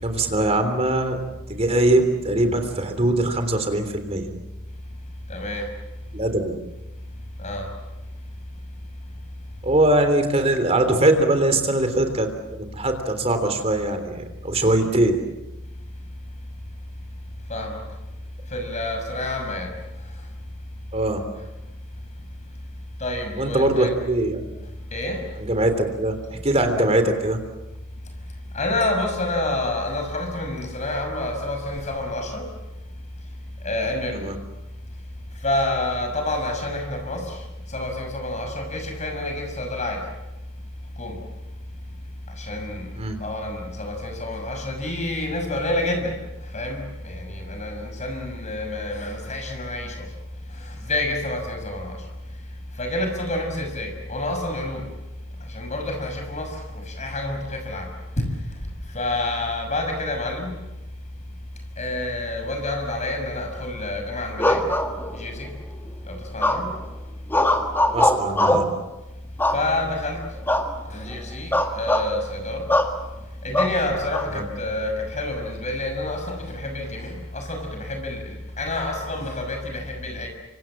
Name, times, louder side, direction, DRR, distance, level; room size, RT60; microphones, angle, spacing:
voice 1, 0.0-1.2 1.5-4.3 6.1-6.4 9.6-12.3 12.6-15.1 20.9-21.2 23.4-24.5 25.4-27.4 34.2-34.4 42.9-43.2 67.9-68.6 74.3-74.4, right 1 dB, 30° right, 7 dB, 3.4 m, -21 dB
voice 2, 5.3-5.7 7.4-7.7 17.5-17.8 18.5-19.7 23.0-23.9 24.9-25.3 28.5-32.5 33.6-34.3 35.4-37.4 37.7-40.1 41.0-41.2 42.4-42.9 43.2-46.2 46.5-50.0 50.6-52.0 52.8-54.8 55.5-57.9 58.2-58.3 58.9-60.5 61.8-64.7 65.1-65.5 66.1-66.7 69.5-70.3 70.9-72.7 73.4-80.3, left 2 dB, 35° left, 4 dB, 6.0 m, -28 dB
sound 1, 64.4-65.4 66.4-66.9 67.3-68.8 69.4-70.0 70.5-70.7 71.0-71.2 71.5-72.1 72.7-73.0 73.5-74.3, left 1 dB, 10° left, 1.8 m, -21 dB
27.5 x 25.5 x 7.5 m, 1.0 s
head